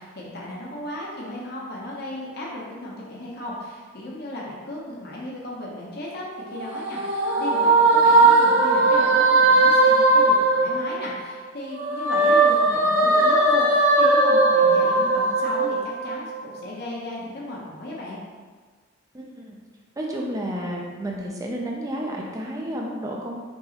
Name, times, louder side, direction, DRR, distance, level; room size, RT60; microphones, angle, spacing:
voice 1, 0.0-18.2, left 1 dB, 50° left, -4 dB, 0.8 m, -35 dB
sound 1, 6.3-11.3 11.7-16.5, right 2 dB, 60° right, 0.9 m, -19 dB
voice 2, 19.1-19.6 20.0-23.4, right 1 dB, 15° right, -2 dB, 0.4 m, -31 dB
5.4 x 3.0 x 2.8 m, 1.4 s
head